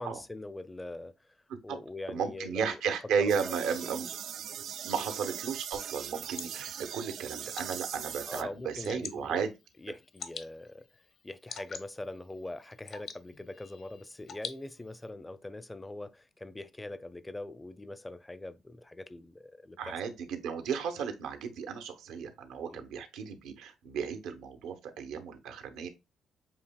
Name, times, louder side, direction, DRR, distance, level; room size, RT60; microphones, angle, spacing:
voice 1, 0.0-1.4 1.6-2.8 3.2-3.8 5.0-5.1 8.3-9.4 9.8-10.9 11.2-19.9 22.7-22.8, left 2 dB, 15° left, 0.5 m, -42 dB
voice 2, 2.1-4.1 4.8-9.5 19.8-25.9, right 6 dB, 90° right, 0.9 m, -34 dB
sound 1, 3.3-8.4, right 9 dB, 70° right, 0.3 m, -40 dB
Water / Drip, 5.7-15.1, left 6 dB, 60° left, 0.9 m, -48 dB
7.3 x 2.8 x 2.2 m
cardioid pair, 90°, 0 cm